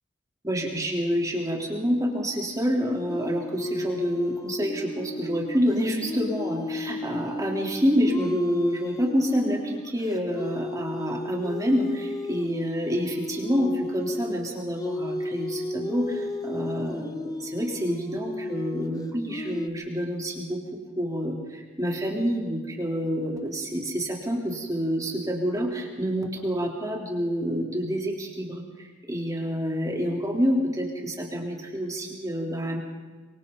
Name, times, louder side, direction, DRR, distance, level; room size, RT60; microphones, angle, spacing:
voice 1, 0.4-20.6 21.0-32.8, equal, 20° right, -1 dB, 3.6 m, -28 dB
sound 1, 3.1-19.7, left 2 dB, 20° left, 0.9 m, -34 dB
26.5 x 24.5 x 4.0 m, 1.3 s
head